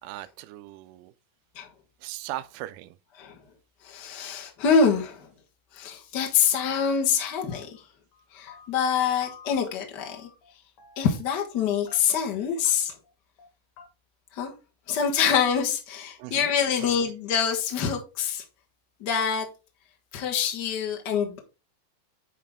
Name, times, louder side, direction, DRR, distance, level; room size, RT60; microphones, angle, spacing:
voice 1, 0.0-1.1 2.0-3.0 16.2-17.1, right 16 dB, 85° right, 1.9 m, -39 dB
voice 2, 3.8-5.3 5.7-7.8 8.3-10.3 11.0-12.9 14.3-14.5 14.9-18.4 19.0-19.5 20.1-21.4, left 7 dB, 85° left, 0.9 m, -25 dB
sound 1, 7.5-7.9 8.1-8.9 9.2-9.7 10.0-10.5 10.8-11.3 11.9-12.3 12.6-12.7 13.0-13.1 13.4-13.5 13.8-13.9, left 6 dB, 55° left, 2.1 m, -50 dB
9.9 x 4.2 x 3.6 m
omnidirectional pair, 4.4 m